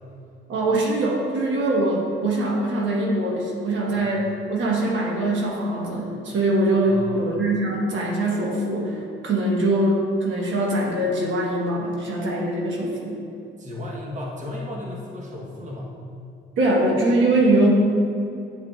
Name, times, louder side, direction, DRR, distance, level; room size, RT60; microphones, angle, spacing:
voice 1, 0.5-13.1 16.6-17.7, right 1 dB, 75° right, -2 dB, 1.3 m, -22 dB
voice 2, 6.8-7.3 13.6-15.9, left 1 dB, 40° right, -2 dB, 1.2 m, -34 dB
9.6 x 4.9 x 2.4 m, 2.7 s
cardioid pair, 90°, 20 cm